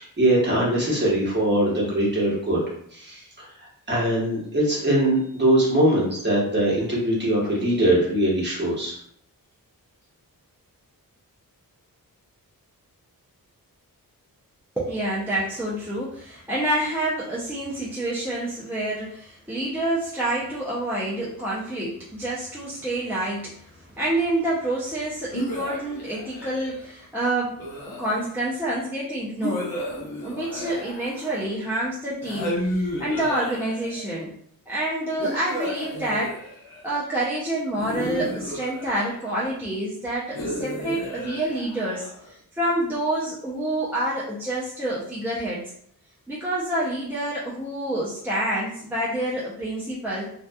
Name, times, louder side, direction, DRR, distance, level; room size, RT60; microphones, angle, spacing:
voice 1, 0.0-2.6 2.9-3.5 3.9-9.0, right 1 dB, 30° right, -5 dB, 1.0 m, -22 dB
voice 2, 14.8-29.8 30.2-34.3 34.7-36.4 36.8-45.7 46.3-50.3, right 1 dB, 5° right, -7 dB, 0.4 m, -28 dB
sound 1, 25.3-26.8 27.6-28.5 29.4-31.6 32.2-34.1 35.2-36.9 37.8-39.4 40.3-42.3, left 1 dB, 80° left, 0.8 m, -33 dB
2.6 x 2.2 x 2.2 m, 0.65 s
wide cardioid pair, 115°, 36 cm